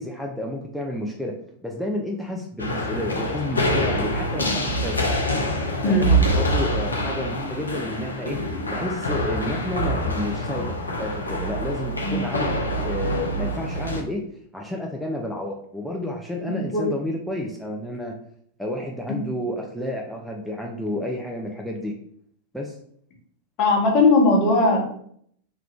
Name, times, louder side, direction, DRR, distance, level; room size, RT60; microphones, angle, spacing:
voice 1, 0.0-1.3 1.6-5.0 5.8-8.4 8.7-12.5 12.8-14.2 14.5-18.1 18.6-21.9 22.5-22.8, left 1 dB, ahead, -1 dB, 0.4 m, -30 dB
sound 1, 2.6-14.0, equal, 80° left, 0.4 m, -25 dB
voice 2, 16.5-16.9 23.6-24.9, left 2 dB, 40° left, -1 dB, 0.9 m, -19 dB
2.4 x 2.2 x 3.5 m, 0.65 s
figure-of-eight pair, 90°, 0 cm